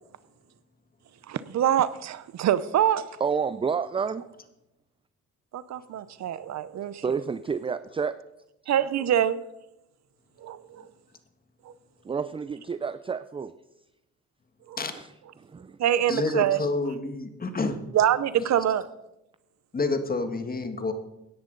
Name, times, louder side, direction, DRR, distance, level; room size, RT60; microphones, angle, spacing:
voice 1, 1.3-3.0 5.5-7.0 8.7-9.4 10.4-10.8 11.7-11.8 14.7-14.8 15.8-16.6 17.9-18.9, right 10 dB, 65° right, 15 dB, 0.7 m, -25 dB
voice 2, 3.2-4.3 7.0-8.1 12.0-13.5 14.9-15.1 15.4-15.8, right 6 dB, 20° right, 14 dB, 0.4 m, -29 dB
voice 3, 16.1-17.8 19.7-20.9, left 3 dB, 30° left, 8 dB, 1.5 m, -28 dB
16.5 x 10.5 x 3.9 m, 0.92 s
cardioid pair, 90°, 30 cm